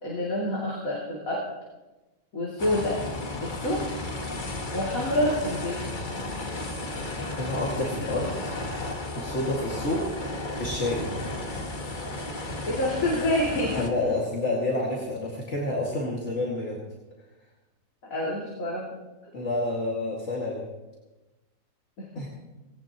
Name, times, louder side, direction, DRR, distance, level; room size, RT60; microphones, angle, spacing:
voice 1, 0.0-1.5 2.3-3.0 3.4-3.8 4.7-5.8 12.7-13.8 18.1-18.9, left 1 dB, 75° left, -5 dB, 3.1 m, -27 dB
sound 1, 2.6-13.9, left 2 dB, 35° left, 1.4 m, -33 dB
voice 2, 7.3-8.5 9.2-10.1 10.6-11.1 13.7-16.8 19.3-20.6 22.1-22.3, left 2 dB, 55° left, -4 dB, 2.4 m, -29 dB
19.0 x 17.0 x 3.0 m, 1.1 s
omnidirectional pair, 1.4 m